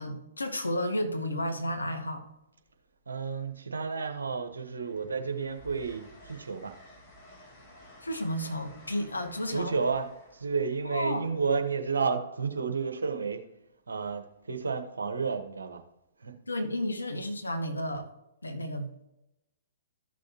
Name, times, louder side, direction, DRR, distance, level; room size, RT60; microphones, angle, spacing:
voice 1, 0.0-2.2 8.0-9.7 10.8-11.3 16.5-18.1 18.4-19.0, left 1 dB, 85° left, 6 dB, 1.4 m, -32 dB
Train, 2.6-3.3 3.7-12.5 14.1-14.3, equal, 30° left, 2.8 m, -55 dB
voice 2, 3.1-6.7 9.5-13.4 13.9-15.8 16.2-16.3, right 5 dB, 75° right, 6 dB, 1.2 m, -31 dB
14.0 x 6.3 x 2.9 m, 0.88 s
figure-of-eight pair, 120°, 0 cm